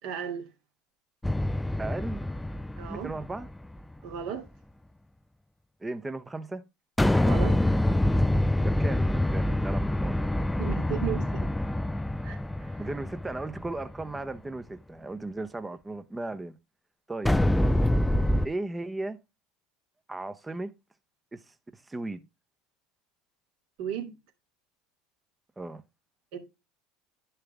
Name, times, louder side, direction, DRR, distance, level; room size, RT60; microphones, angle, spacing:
voice 1, 0.0-0.5 2.8-3.1 4.0-4.4 7.2-7.6 10.6-11.5 12.2-12.7 23.8-24.1 26.3-26.4, right 8 dB, 65° right, 2.6 m, -35 dB
sound 1, 1.2-3.8 7.0-14.2 17.3-18.5, left 1 dB, 5° left, 0.4 m, -26 dB
voice 2, 1.8-2.2 2.9-3.5 5.8-6.6 8.6-10.2 12.8-16.6 17.1-17.4 18.4-19.2 20.1-20.7 21.3-22.2 25.6-25.8, right 2 dB, 15° right, 0.8 m, -36 dB
10.5 x 5.7 x 3.5 m
hypercardioid pair, 85°, 0 cm